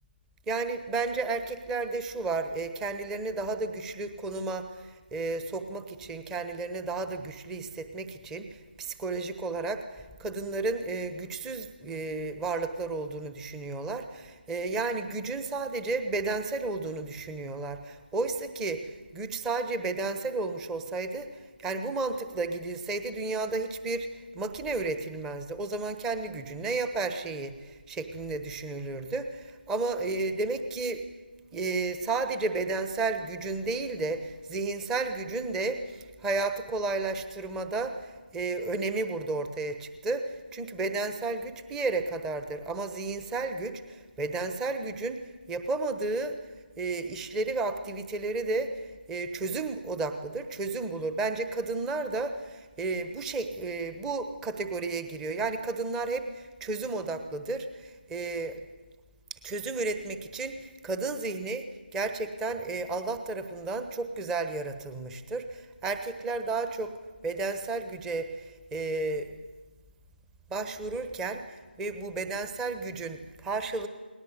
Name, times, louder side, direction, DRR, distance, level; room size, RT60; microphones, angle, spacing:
voice 1, 0.5-31.1 31.5-46.4 46.8-48.8 49.1-58.6 59.3-61.6 61.9-67.0 67.2-69.3 70.5-73.9, right 3 dB, 5° right, 9 dB, 1.2 m, -32 dB
29.0 x 20.0 x 8.2 m, 1.3 s
figure-of-eight pair, 155°, 6 cm